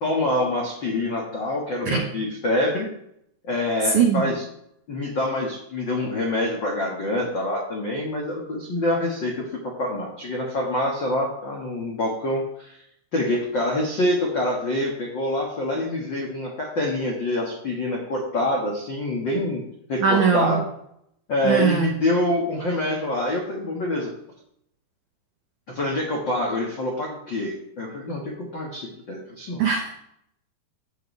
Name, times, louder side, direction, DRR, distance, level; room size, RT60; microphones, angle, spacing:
voice 1, 0.0-2.9 3.4-4.4 4.9-12.8 13.1-19.6 19.9-20.6 21.3-24.1 25.7-29.6, left 1 dB, 90° left, -3 dB, 1.0 m, -26 dB
voice 2, 3.8-4.3 20.0-20.6 21.4-21.9 29.6-29.9, right 6 dB, 85° right, 2 dB, 1.7 m, -21 dB
14.5 x 8.2 x 3.4 m, 0.74 s
omnidirectional pair, 5.2 m